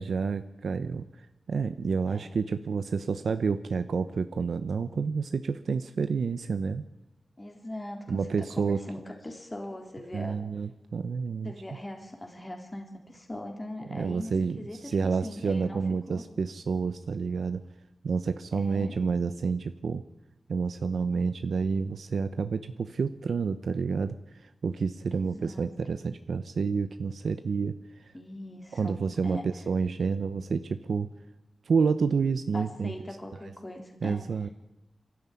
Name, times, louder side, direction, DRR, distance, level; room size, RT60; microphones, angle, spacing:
voice 1, 0.0-6.8 8.1-8.8 10.1-11.5 13.9-17.6 18.0-20.0 20.5-28.1 28.7-31.1 31.6-32.9 34.0-34.5, right 5 dB, 85° right, 10 dB, 0.7 m, -29 dB
voice 2, 7.4-10.4 11.4-15.8 16.1-16.2 18.5-19.0 25.1-25.7 28.1-29.0 29.2-29.5 32.5-34.2, left 1 dB, 20° left, 3 dB, 3.5 m, -40 dB
22.0 x 13.0 x 9.8 m, 0.96 s
wide cardioid pair, 90°, 0 cm